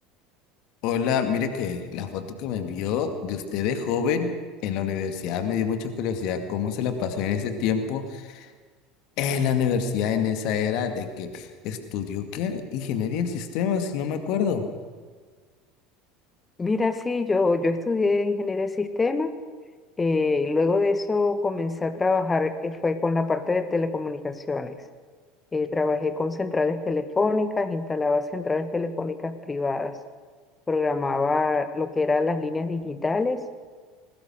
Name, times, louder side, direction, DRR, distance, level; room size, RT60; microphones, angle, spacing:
voice 1, 0.8-4.3 4.6-8.5 9.2-14.6, left 7 dB, 50° left, 7 dB, 2.2 m, -27 dB
voice 2, 16.6-19.4 20.0-24.8 25.5-29.9 30.7-33.4, left 3 dB, 15° left, 11 dB, 1.7 m, -25 dB
21.5 x 19.5 x 6.5 m, 1.5 s
figure-of-eight pair, 70°, 0 cm